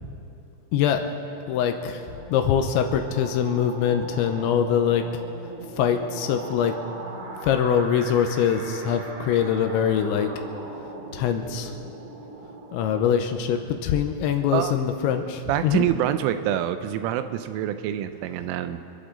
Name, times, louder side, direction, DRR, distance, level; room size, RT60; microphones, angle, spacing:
voice 1, 0.7-1.0 1.5-2.0 2.3-5.0 5.8-6.7 7.4-10.3 11.1-11.7 12.7-15.9, left 8 dB, 85° left, 6 dB, 2.9 m, -23 dB
sound 1, 1.2-13.6, right 3 dB, 55° right, 2.5 m, -40 dB
voice 2, 15.5-18.8, right 11 dB, 85° right, 10 dB, 3.1 m, -26 dB
27.5 x 12.0 x 3.8 m, 2.8 s
omnidirectional pair, 5.7 m